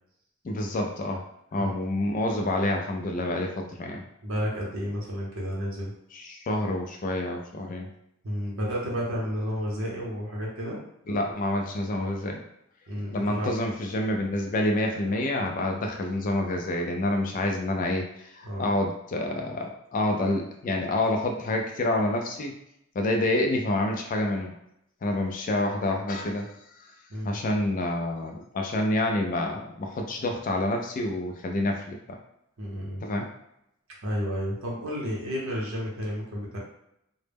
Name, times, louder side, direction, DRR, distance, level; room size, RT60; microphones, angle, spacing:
voice 1, 0.4-1.2 1.5-4.0 6.1-7.9 11.1-12.4 13.1-22.5 23.0-24.5 25.0-26.5 27.3-32.2 33.0-33.3, left 1 dB, 40° left, 2 dB, 0.3 m, -28 dB
voice 2, 4.2-5.9 8.2-10.8 12.9-13.5 18.4-18.7 27.1-27.4 32.6-33.1 34.0-36.6, equal, 70° right, -4 dB, 0.7 m, -31 dB
2.0 x 2.0 x 3.3 m, 0.79 s
head